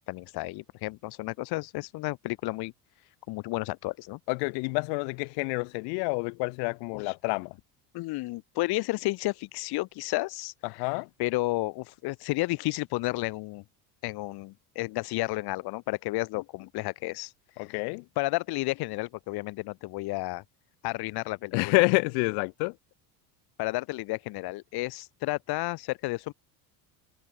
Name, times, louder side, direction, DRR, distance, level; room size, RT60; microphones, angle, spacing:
voice 1, 0.1-2.7 3.3-4.2 6.9-7.1 7.9-10.5 11.2-13.6 14.0-17.3 18.2-20.4 20.8-21.7 23.6-26.3, left 21 dB, 65° left, 1.7 m, -32 dB
voice 2, 4.3-7.6 10.6-11.1 17.6-18.1 21.5-22.8, left 38 dB, 80° left, 1.8 m, -28 dB
cardioid pair, 120°, 41 cm